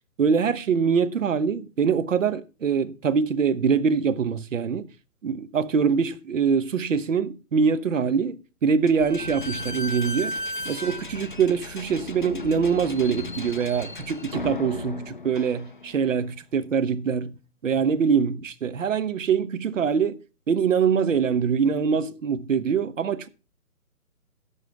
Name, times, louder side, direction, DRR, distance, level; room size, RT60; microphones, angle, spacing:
voice 1, 0.2-4.9 5.2-10.3 10.6-17.3 17.6-20.2 20.5-23.3, right 6 dB, 55° right, 1.0 m, -24 dB
Slam / Squeak, 8.9-16.1, left 2 dB, 35° left, 0.4 m, -35 dB
12.0 x 7.0 x 4.6 m
figure-of-eight pair, 145°, 46 cm